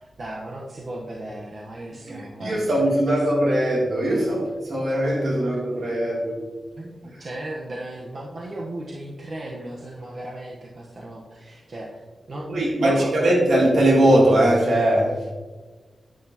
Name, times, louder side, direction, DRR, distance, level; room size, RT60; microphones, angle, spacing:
voice 1, 0.0-3.2 4.7-4.9 6.8-12.0 12.3-13.4, right 1 dB, 45° right, 1.2 m, -35 dB
voice 2, 2.1-6.5 12.5-15.3, right 1 dB, 75° right, 3.1 m, -20 dB
10.5 x 9.3 x 3.0 m
wide cardioid pair, 155°, 0 cm